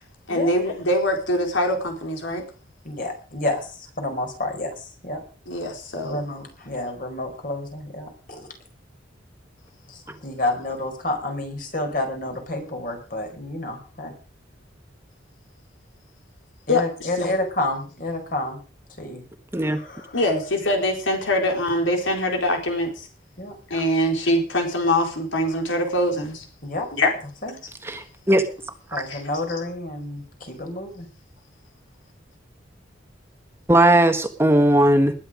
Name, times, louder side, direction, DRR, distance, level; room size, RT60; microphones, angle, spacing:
voice 1, 0.3-2.4 5.5-6.2 16.7-16.8 17.2-17.3 20.1-23.1 23.7-26.4 26.9-27.1 29.1-29.2, left 1 dB, 90° left, 2 dB, 4.3 m, -23 dB
voice 2, 2.8-5.2 6.0-8.5 9.9-14.1 16.7-18.6 19.0-19.2 19.6-20.2 23.4-23.6 26.6-26.9 27.4-27.6 28.9-31.1, left 1 dB, 45° left, 4 dB, 5.0 m, -29 dB
voice 3, 27.9-28.4 28.9-29.0 33.7-35.1, right 1 dB, 15° right, 7 dB, 1.4 m, -18 dB
20.0 x 10.0 x 5.1 m, 0.39 s
head